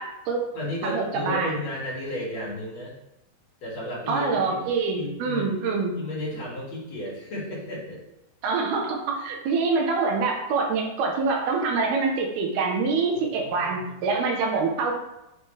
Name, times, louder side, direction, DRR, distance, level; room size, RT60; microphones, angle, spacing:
voice 1, 0.0-0.5 0.8-1.5 4.1-5.9 8.4-14.9, right 4 dB, 75° right, 1 dB, 3.0 m, -25 dB
voice 2, 0.5-2.9 3.6-4.6 5.0-5.4 5.9-8.0 13.4-13.9, left 1 dB, 45° left, -7 dB, 3.8 m, -33 dB
9.4 x 7.1 x 3.5 m, 0.89 s
omnidirectional pair, 4.6 m